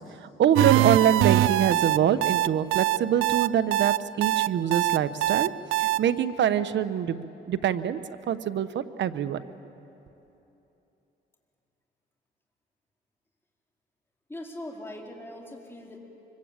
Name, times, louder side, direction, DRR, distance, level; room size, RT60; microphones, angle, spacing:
voice 1, 0.4-5.5 5.8-8.0 8.3-9.4, right 9 dB, 65° right, 12 dB, 1.1 m, -24 dB
sound 1, 0.6-6.0, right 14 dB, 90° right, 0.6 m, -23 dB
voice 2, 14.3-16.0, left 1 dB, 10° left, -1 dB, 4.4 m, -40 dB
25.0 x 24.0 x 8.9 m, 3.0 s
cardioid pair, 90°, 20 cm